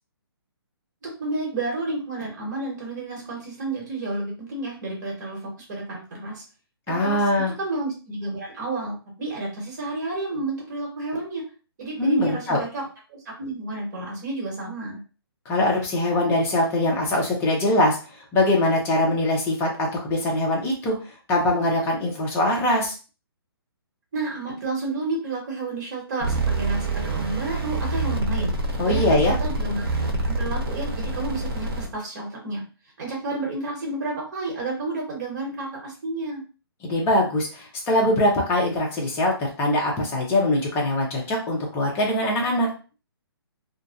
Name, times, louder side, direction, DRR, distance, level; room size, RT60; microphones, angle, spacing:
voice 1, 1.0-6.4 6.9-7.2 7.6-11.4 11.8-15.0 24.1-29.8 30.2-32.6 33.0-36.4, right 2 dB, 45° right, -1 dB, 1.1 m, -31 dB
voice 2, 6.9-7.5 12.0-12.6 15.5-23.0 28.8-29.4 36.8-42.7, left 1 dB, 15° left, -1 dB, 0.7 m, -22 dB
sound 1, 26.2-31.9, right 2 dB, 65° right, 0.7 m, -26 dB
2.5 x 2.1 x 2.4 m, 0.34 s
hypercardioid pair, 145°, 13 cm